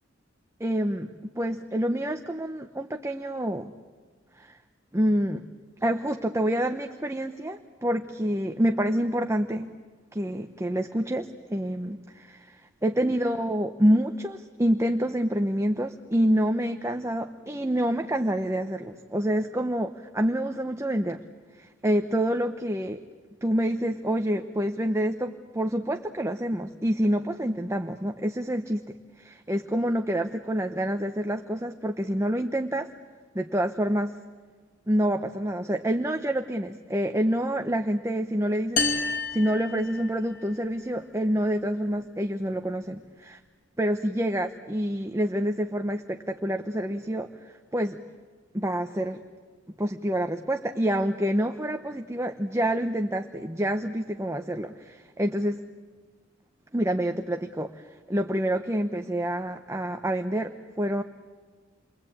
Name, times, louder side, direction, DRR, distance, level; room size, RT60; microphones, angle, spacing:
voice 1, 0.6-1.1 1.3-3.7 4.4-4.6 4.9-5.4 5.8-9.7 10.1-21.2 21.6-23.0 23.4-32.9 33.3-34.1 34.9-38.8 39.3-43.4 43.8-48.0 48.5-49.2 49.8-55.6 56.7-61.0, equal, 15° right, 5 dB, 0.9 m, -27 dB
sound 1, 38.8-40.5, left 3 dB, 45° left, 2.5 m, -29 dB
29.5 x 22.5 x 8.7 m, 1.5 s
head